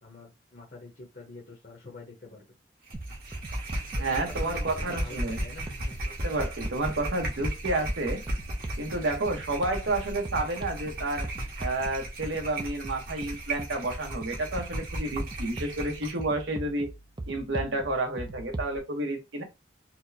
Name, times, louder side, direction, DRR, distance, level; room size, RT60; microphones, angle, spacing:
voice 1, 0.0-2.5 3.9-6.1, left 2 dB, 45° left, 0.8 m, -46 dB
sound 1, 2.9-18.8, right 2 dB, 25° right, 0.4 m, -42 dB
sound 2, 2.9-16.2, right 1 dB, 50° right, 1.2 m, -35 dB
voice 2, 4.0-5.4 6.1-8.2 8.8-11.3 11.6-16.9 17.3-19.4, right 2 dB, 75° right, 0.9 m, -30 dB
4.4 x 2.1 x 2.7 m
head